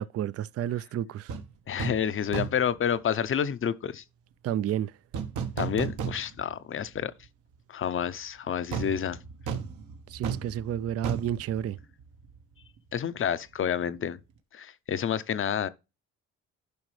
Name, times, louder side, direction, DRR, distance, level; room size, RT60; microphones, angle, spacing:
voice 1, 0.0-1.4 4.4-4.9 10.1-11.8, right 10 dB, 55° right, 0.4 m, -31 dB
sound 1, 1.3-1.5 1.8-2.1 2.3-2.7 5.1-6.6 6.9-7.0 8.7-12.4 12.6-12.8, right 6 dB, 80° right, 1.3 m, -34 dB
voice 2, 1.7-4.0 5.6-7.1 7.7-9.2 12.9-14.2 14.5-15.7, left 8 dB, 45° left, 0.6 m, -29 dB
11.5 x 5.1 x 3.2 m
cardioid pair, 90°, 30 cm